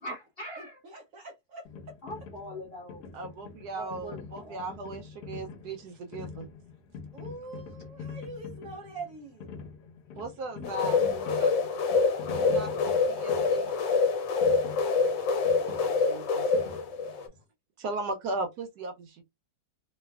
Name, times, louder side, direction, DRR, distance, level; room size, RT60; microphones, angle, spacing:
voice 1, 0.0-0.8 2.0-3.0 3.7-4.6 10.5-11.6, left 1 dB, 45° left, 0.8 m, -42 dB
voice 2, 0.6-1.6 7.1-9.6 11.4-11.5, right 3 dB, 85° right, 0.7 m, -43 dB
sound 1, 1.7-17.4, left 5 dB, 70° left, 1.2 m, -45 dB
voice 3, 3.1-6.5 10.2-11.1 12.3-13.7 15.4-16.5 17.8-19.2, right 2 dB, 70° right, 1.0 m, -37 dB
sound 2, 10.6-17.3, left 4 dB, 85° left, 1.3 m, -26 dB
3.2 x 2.2 x 2.2 m
omnidirectional pair, 2.0 m